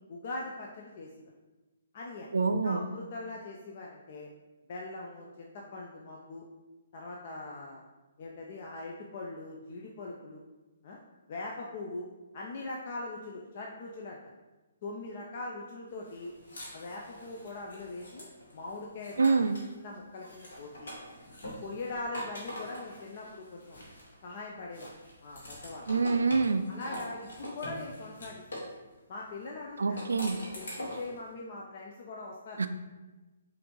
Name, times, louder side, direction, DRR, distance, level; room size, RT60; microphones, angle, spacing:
voice 1, 0.1-1.3 1.9-2.4 2.6-4.3 4.7-6.4 6.9-7.8 8.2-10.4 10.8-11.0 11.3-12.1 12.3-14.3 14.8-16.3 16.7-18.2 18.5-19.4 19.7-20.9 21.4-23.8 24.2-24.9 25.2-25.9 26.7-28.4 29.1-30.0 30.5-32.7, left 2 dB, 45° left, -1 dB, 0.4 m, -41 dB
voice 2, 2.3-2.9 19.2-19.6 25.9-26.6 29.8-30.4 32.6-32.7, right 4 dB, 70° right, 9 dB, 0.3 m, -26 dB
sound 1, 16.1-19.7 20.1-24.3 24.7-28.7 29.8-31.2, equal, 65° left, 1.3 m, -44 dB
5.7 x 2.6 x 3.1 m, 1.2 s
figure-of-eight pair, 130°, 0 cm